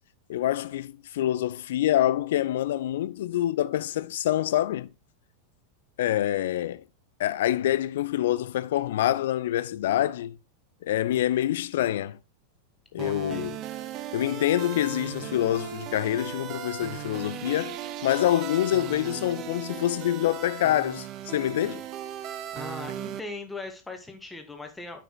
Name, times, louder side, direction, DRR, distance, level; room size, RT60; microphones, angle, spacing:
voice 1, 0.3-4.9 6.0-6.8 7.2-10.4 10.8-12.2 12.9-13.6 14.1-21.8, left 13 dB, 55° left, 0.4 m, -26 dB
voice 2, 13.0-13.6 21.6-21.8 22.5-25.0, left 3 dB, 10° left, 1.5 m, -39 dB
sound 1, 13.0-23.2, right 11 dB, 35° right, 0.5 m, -37 dB
11.0 x 5.9 x 2.4 m
figure-of-eight pair, 90°, 0 cm